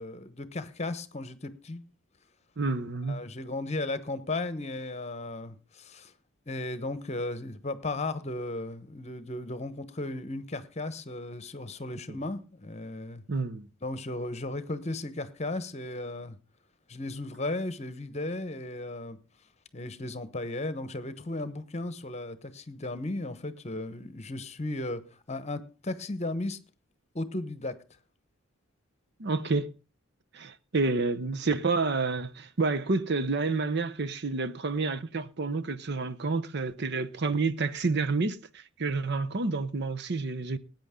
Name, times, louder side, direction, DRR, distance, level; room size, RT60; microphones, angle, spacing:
voice 1, 0.0-1.8 3.1-6.1 6.5-13.2 13.8-16.4 16.9-19.2 19.7-26.6 27.1-27.7, left 2 dB, 30° left, 1.1 m, -35 dB
voice 2, 2.6-3.2 13.3-13.7 29.2-29.7 30.3-40.6, right 3 dB, 55° right, 0.7 m, -29 dB
19.5 x 9.1 x 3.7 m
head